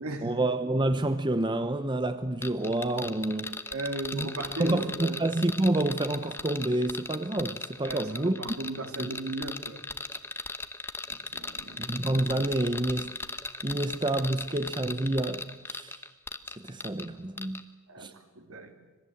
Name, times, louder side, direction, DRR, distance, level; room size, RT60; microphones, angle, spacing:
voice 1, 0.2-3.6 4.1-4.3 4.6-8.5 9.0-9.1 11.8-13.2 13.6-16.0 16.6-17.7 18.0-18.1, right 1 dB, 20° right, 0.8 m, -28 dB
sound 1, 2.4-17.1 17.4-17.6, left 3 dB, 10° left, 0.9 m, -37 dB
voice 2, 3.7-5.2 7.8-9.8 11.1-11.9 17.9-18.1 18.4-18.7, right 2 dB, 75° right, 3.0 m, -36 dB
26.0 x 20.5 x 7.8 m
head